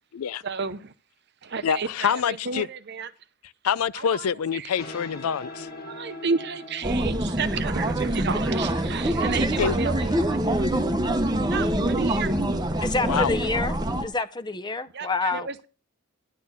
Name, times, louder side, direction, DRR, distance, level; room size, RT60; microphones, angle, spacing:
voice 1, 0.4-0.9 1.4-3.1 3.9-4.3 4.5-4.7 5.9-10.7 11.3-12.3 12.7-12.8 14.9-15.7, right 5 dB, 50° right, 0.8 m, -32 dB
voice 2, 1.6-2.7 3.6-5.7 9.6-9.8 13.1-13.4, left 7 dB, 80° left, 0.4 m, -26 dB
sound 1, 4.5-11.7, left 2 dB, 45° left, 1.8 m, -44 dB
sound 2, 6.8-14.1, right 1 dB, 20° right, 0.8 m, -25 dB
voice 3, 12.8-13.7 14.0-15.5, left 3 dB, 20° left, 0.6 m, -27 dB
11.0 x 4.3 x 8.0 m
head